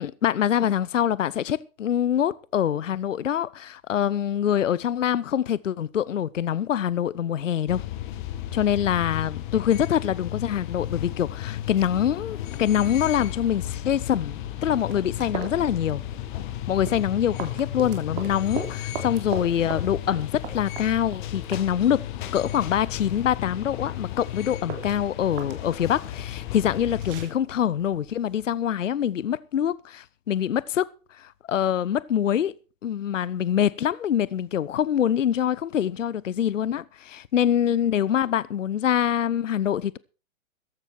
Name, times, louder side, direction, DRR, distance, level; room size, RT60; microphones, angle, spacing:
voice 1, 0.0-7.8 8.5-16.0 16.7-32.5 32.8-40.0, left 10 dB, 70° left, 0.7 m, -25 dB
sound 1, 7.7-27.3, left 12 dB, 35° left, 1.6 m, -34 dB
sound 2, 14.6-28.5, right 7 dB, 40° right, 3.2 m, -41 dB
14.5 x 10.5 x 4.5 m
figure-of-eight pair, 120°, 40 cm